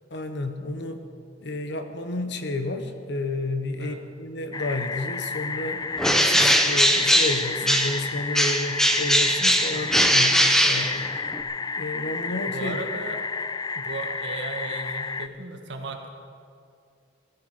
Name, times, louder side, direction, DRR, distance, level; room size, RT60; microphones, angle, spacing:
voice 1, 0.1-1.0 1.4-5.8 6.2-11.0 11.8-12.9, left 2 dB, 65° left, 7 dB, 1.3 m, -31 dB
sound 1, 4.5-15.3, left 5 dB, 20° left, 0.3 m, -31 dB
Bird, 6.0-8.1 8.3-11.4, equal, 5° left, 0.8 m, -20 dB
voice 2, 9.7-10.0 10.7-10.9 12.5-13.2 13.8-16.1, right 2 dB, 65° right, 3 dB, 1.8 m, -36 dB
17.0 x 14.5 x 5.1 m, 2.4 s
head